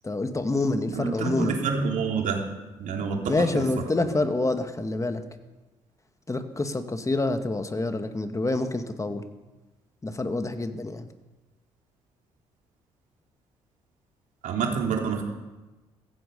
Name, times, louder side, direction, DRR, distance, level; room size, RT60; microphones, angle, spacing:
voice 1, 0.0-1.6 3.3-5.2 6.3-9.2 10.0-11.1, left 2 dB, 25° left, 8 dB, 2.0 m, -27 dB
voice 2, 0.9-2.4 2.8-3.6 14.4-15.2, right 5 dB, 70° right, 1 dB, 3.3 m, -27 dB
15.5 x 15.5 x 5.5 m, 1.2 s
hypercardioid pair, 55°, 14 cm